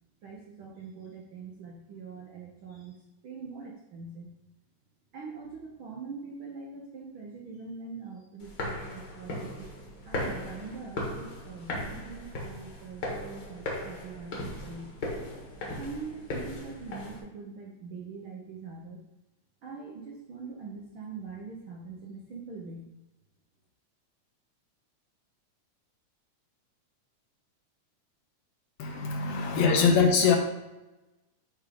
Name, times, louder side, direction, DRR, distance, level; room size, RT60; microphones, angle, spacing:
voice 1, 0.2-4.3 5.1-9.7 10.0-14.9 15.8-19.0 19.6-22.9, right 4 dB, 90° right, -1 dB, 1.1 m, -43 dB
sound 1, 8.4-17.2, left 1 dB, 45° left, 2.0 m, -37 dB
voice 2, 28.8-30.4, left 5 dB, 75° left, 4 dB, 1.7 m, -23 dB
8.7 x 3.7 x 5.1 m, 1.0 s
omnidirectional pair, 3.6 m